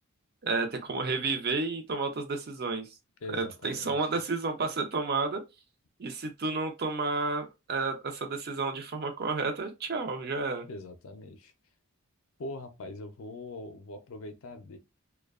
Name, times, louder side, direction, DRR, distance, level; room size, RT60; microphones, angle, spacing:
voice 1, 0.4-2.9 3.3-5.4 6.0-10.7, right 3 dB, 45° right, 0.5 m, -31 dB
voice 2, 3.2-4.1 10.7-11.5 12.4-14.8, left 2 dB, 65° left, 0.4 m, -42 dB
2.6 x 2.1 x 2.3 m
head